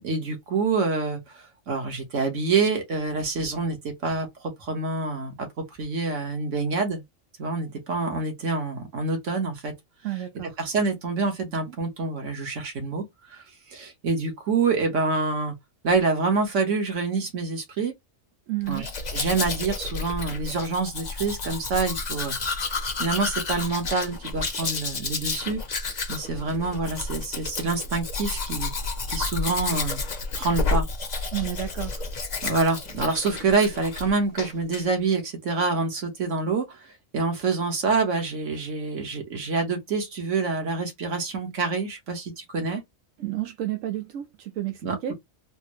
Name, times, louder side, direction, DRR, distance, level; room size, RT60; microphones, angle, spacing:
voice 1, 0.0-7.0 7.4-9.7 10.6-13.0 13.3-13.4 13.7-15.5 15.8-17.9 18.7-18.9 19.1-22.3 23.0-25.6 26.1-28.7 29.1-30.0 30.3-30.9 32.4-36.8 37.1-42.8 44.8-45.1, right 4 dB, 70° right, 1.6 m, -26 dB
voice 2, 10.0-10.6 18.5-18.9 31.3-32.0 43.2-45.1, right 13 dB, 85° right, 1.0 m, -31 dB
Domestic sounds home sounds, 18.7-34.1 34.4-34.8, left 3 dB, 40° left, 0.8 m, -31 dB
4.1 x 2.1 x 3.0 m
omnidirectional pair, 1.3 m